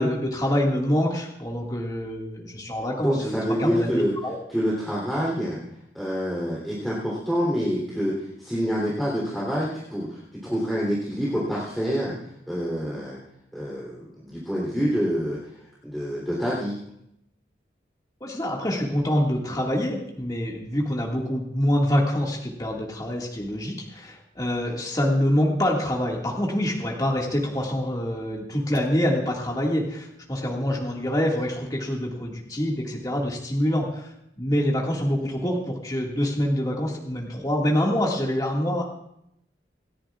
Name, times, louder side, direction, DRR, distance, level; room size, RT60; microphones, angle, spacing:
voice 1, 0.0-4.4 18.2-38.8, equal, 20° left, -2 dB, 2.0 m, -26 dB
voice 2, 3.0-4.1 4.5-5.6 5.9-12.1 12.5-13.2 13.5-15.4 15.8-16.7, equal, ahead, -6 dB, 3.3 m, -27 dB
27.0 x 10.5 x 2.4 m, 0.78 s
head